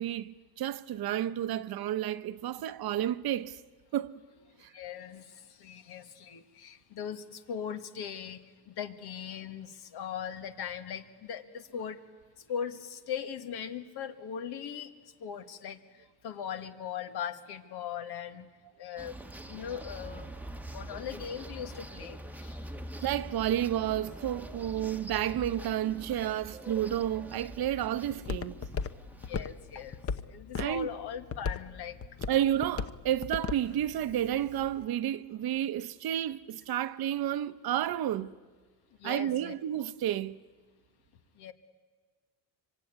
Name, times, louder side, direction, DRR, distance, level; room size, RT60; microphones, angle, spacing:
voice 1, 0.0-3.6 3.9-4.2 4.6-4.7 23.0-28.6 30.6-30.9 32.3-38.4 39.0-40.4, right 11 dB, 65° right, 1.0 m, -31 dB
voice 2, 4.5-12.0 12.4-14.9 15.2-18.5 18.8-19.2 19.5-20.3 20.7-22.8 29.2-30.0 30.3-32.0 39.0-39.5 41.4-41.5, left 8 dB, 70° left, 1.9 m, -40 dB
sound 1, 19.0-30.0, right 1 dB, 5° right, 1.2 m, -44 dB
Walk footsteps, 26.9-34.8, left 5 dB, 35° left, 1.0 m, -39 dB
25.0 x 24.0 x 9.7 m
cardioid pair, 90°, 40 cm